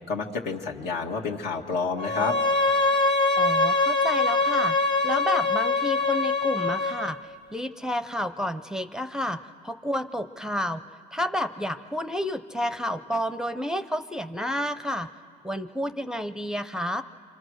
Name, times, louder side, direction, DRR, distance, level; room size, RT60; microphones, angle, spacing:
voice 1, 0.1-2.4, left 4 dB, 75° left, 0 dB, 1.9 m, -29 dB
Bowed string instrument, 2.0-7.1, left 3 dB, 30° left, 1.5 m, -23 dB
voice 2, 3.4-4.8 5.0-7.2 7.5-10.8 11.1-15.1 15.4-17.0, equal, 5° right, 10 dB, 0.6 m, -30 dB
28.5 x 25.0 x 6.4 m, 2.3 s
cardioid pair, 110°, 17 cm